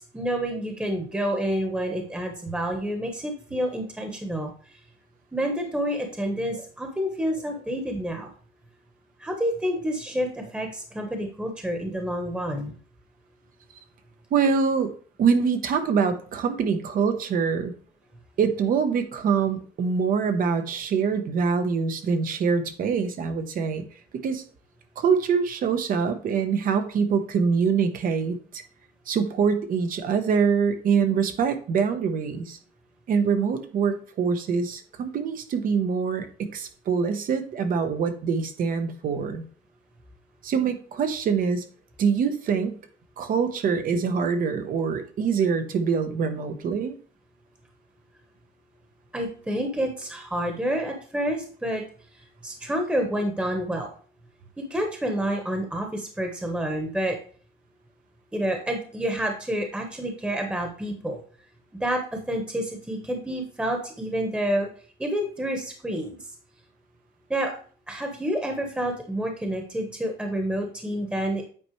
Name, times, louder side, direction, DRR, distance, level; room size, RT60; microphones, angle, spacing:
voice 1, 0.1-4.5 5.3-8.3 9.2-12.7 49.1-51.8 52.4-53.9 54.7-57.2 58.3-61.2 61.8-62.0 62.3-64.7 65.0-66.2 67.3-67.5 67.9-71.4, equal, 5° right, 3 dB, 1.1 m, -28 dB
voice 2, 14.3-14.9 15.2-17.7 18.4-23.9 24.2-24.4 25.0-28.6 29.1-32.6 33.1-39.4 40.4-41.6 42.0-42.8 43.2-46.9, right 6 dB, 55° right, 8 dB, 0.9 m, -24 dB
8.8 x 4.3 x 3.1 m, 0.44 s
cardioid pair, 110°, 17 cm